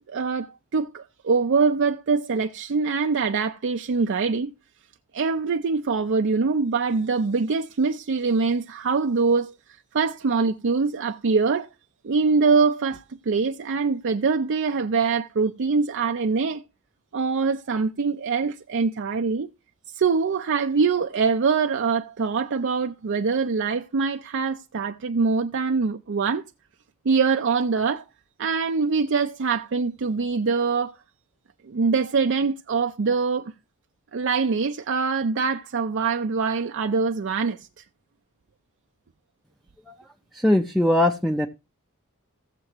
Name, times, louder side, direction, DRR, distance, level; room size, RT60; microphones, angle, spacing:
voice 1, 0.1-4.5 5.1-9.5 9.9-11.7 12.0-16.6 17.1-19.5 19.9-26.4 27.1-28.0 28.4-30.9 31.6-33.5 34.1-37.6, right 4 dB, 60° right, 0.5 m, -23 dB
voice 2, 40.3-41.5, left 1 dB, ahead, 0.5 m, -21 dB
15.5 x 7.5 x 3.0 m
head